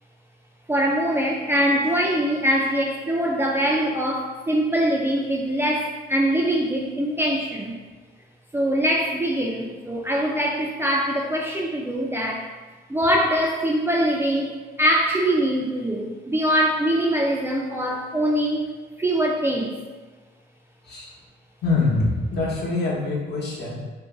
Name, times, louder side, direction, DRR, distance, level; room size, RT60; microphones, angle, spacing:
voice 1, 0.7-7.7 8.5-12.5 12.9-14.5 14.8-18.7 19.0-19.7, equal, 10° right, -1 dB, 0.3 m, -23 dB
voice 2, 21.6-23.8, left 3 dB, 60° left, -4 dB, 0.9 m, -24 dB
2.5 x 2.2 x 3.7 m, 1.3 s
cardioid pair, 90°, 20 cm